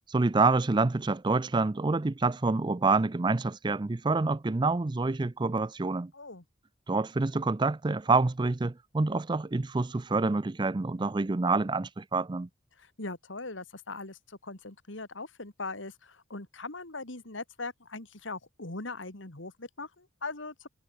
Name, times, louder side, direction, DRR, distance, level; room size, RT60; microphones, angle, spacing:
voice 1, 0.1-6.1 6.9-12.5, right 3 dB, 25° right, 0.5 m, -27 dB
voice 2, 6.1-6.4 12.8-20.7, left 3 dB, 70° left, 2.8 m, -40 dB
head